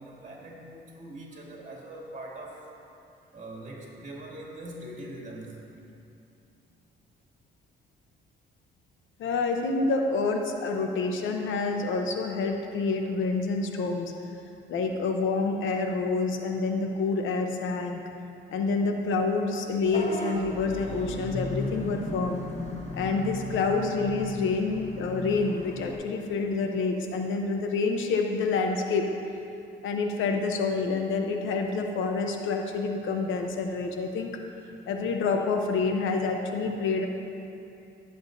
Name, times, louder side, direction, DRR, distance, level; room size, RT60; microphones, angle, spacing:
voice 1, 0.0-2.6 3.3-5.7, right 1 dB, 40° right, -3 dB, 2.4 m, -42 dB
voice 2, 9.2-14.1 14.7-18.0 18.5-22.4 22.9-29.1 29.8-34.3 34.9-37.1, left 4 dB, 80° left, 4 dB, 0.9 m, -28 dB
Vehicle horn car horn honking / Bus, 19.8-25.9, left 2 dB, 35° left, 1.3 m, -36 dB
15.5 x 7.8 x 2.7 m, 2.7 s
cardioid pair, 90°, 20 cm